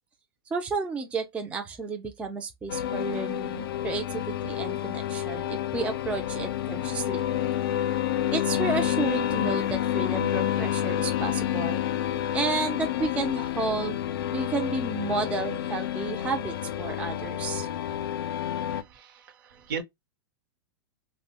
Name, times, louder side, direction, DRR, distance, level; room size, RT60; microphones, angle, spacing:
voice 1, 0.5-7.2 8.3-11.8 12.3-14.0 14.3-17.7, right 4 dB, 10° right, 0.3 m, -32 dB
sound 1, 2.7-18.8, left 11 dB, 75° left, 0.4 m, -29 dB
voice 2, 18.7-19.8, right 6 dB, 60° right, 0.7 m, -37 dB
2.7 x 2.0 x 2.8 m
hypercardioid pair, 135°, 12 cm